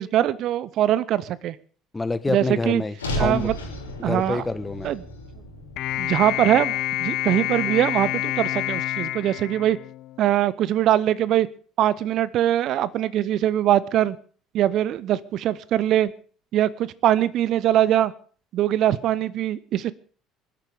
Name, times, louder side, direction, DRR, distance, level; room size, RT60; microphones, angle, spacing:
voice 1, 0.0-1.6 2.3-2.8 3.2-3.5 4.0-4.4 4.8-5.0 5.9-6.7 7.0-9.8 10.2-11.5 11.8-14.2 14.5-16.1 16.5-18.1 18.5-19.9, right 12 dB, 50° right, 19 dB, 0.7 m, -22 dB
voice 2, 1.9-3.5 4.0-4.9, left 3 dB, 15° left, 14 dB, 1.2 m, -27 dB
sound 1, 3.0-7.2, equal, 75° left, 3.9 m, -34 dB
sound 2, 5.8-10.3, left 15 dB, 55° left, 0.7 m, -28 dB
26.5 x 12.0 x 3.6 m, 0.43 s
figure-of-eight pair, 55°, 0 cm